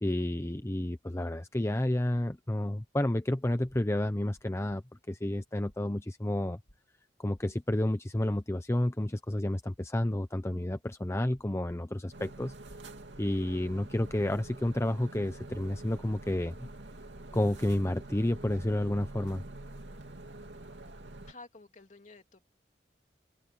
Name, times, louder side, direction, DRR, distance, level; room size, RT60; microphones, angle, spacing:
voice 1, 0.0-4.8 5.1-6.6 7.2-12.5 13.2-16.7 17.3-19.4, left 1 dB, 15° left, 0.8 m, -30 dB
sound 1, 4.3-4.8 5.3-5.8 6.3-6.8 7.3-7.8 8.3-8.8 9.3-9.8 10.3-10.8 11.3-11.8 12.3-12.8 13.3-13.8 14.3-14.8, equal, 80° left, 3.8 m, -63 dB
sound 2, 12.1-21.3, right 2 dB, 85° right, 2.7 m, -46 dB
voice 2, 21.3-22.4, left 3 dB, 45° left, 2.7 m, -51 dB
open air
head